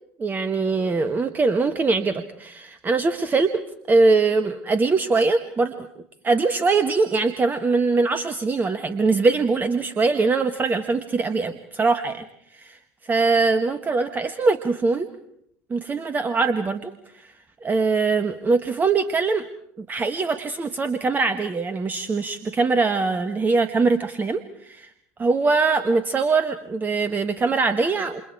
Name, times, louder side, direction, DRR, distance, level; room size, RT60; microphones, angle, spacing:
voice 1, 0.2-3.5 3.9-5.9 6.2-12.2 12.5-12.8 13.0-15.1 15.7-17.3 17.6-19.4 19.8-24.9 25.2-28.2, right 4 dB, 25° right, 10 dB, 1.4 m, -22 dB
29.0 x 27.5 x 4.7 m, 0.74 s
figure-of-eight pair, 65°, 8 cm